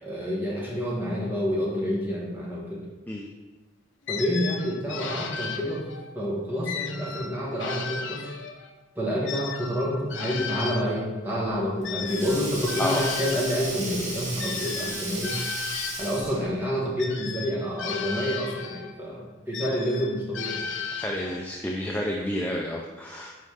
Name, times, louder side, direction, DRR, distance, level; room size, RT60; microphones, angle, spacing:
voice 1, 0.0-2.8 4.1-5.9 6.1-8.3 8.9-15.4 16.0-20.6, equal, 10° right, -5 dB, 1.6 m, -28 dB
sound 1, 4.1-6.1 6.7-8.7 9.2-13.6 14.4-16.4 17.0-19.0 19.5-21.5, left 6 dB, 70° left, 0.7 m, -35 dB
Sink (filling or washing), 11.4-16.6, right 2 dB, 40° right, 1.8 m, -35 dB
voice 2, 21.0-23.3, left 1 dB, 10° left, -1 dB, 0.4 m, -30 dB
5.6 x 5.2 x 4.9 m, 1.2 s
head